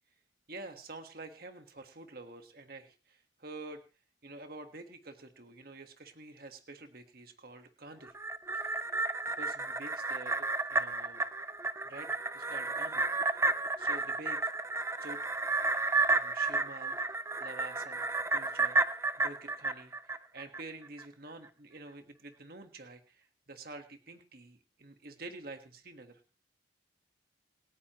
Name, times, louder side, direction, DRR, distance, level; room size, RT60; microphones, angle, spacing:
voice 1, 0.5-3.8 4.2-8.2 8.5-8.9 9.4-11.2 11.8-13.5 13.8-14.5 15.0-15.2 16.2-17.0 17.4-18.1 18.3-26.2, right 2 dB, 50° right, 5 dB, 1.6 m, -48 dB
sound 1, 8.1-20.6 21.0-21.1, right 3 dB, 15° right, 0.6 m, -32 dB
27.5 x 9.6 x 3.1 m, 0.34 s
head